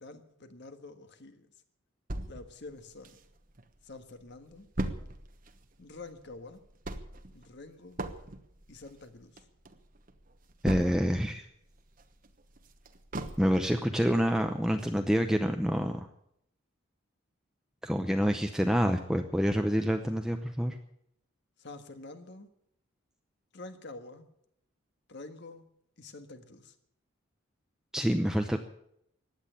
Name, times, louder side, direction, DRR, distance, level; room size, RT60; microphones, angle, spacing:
voice 1, 0.0-1.5 2.3-3.2 3.8-4.7 5.8-6.6 7.3-8.0 8.7-9.5 21.6-22.5 23.5-24.3 25.1-25.6 26.0-26.7, left 3 dB, 55° left, 8 dB, 1.6 m, -47 dB
sound 1, 2.1-3.6 4.0-4.1 4.3-11.3 11.7-13.8 14.3-14.4 14.8-14.9, right 1 dB, 40° right, 1.2 m, -39 dB
voice 2, 10.6-11.5 13.4-16.1 17.8-20.8 27.9-28.6, equal, 5° right, 5 dB, 0.7 m, -27 dB
16.0 x 10.5 x 8.7 m, 0.74 s
head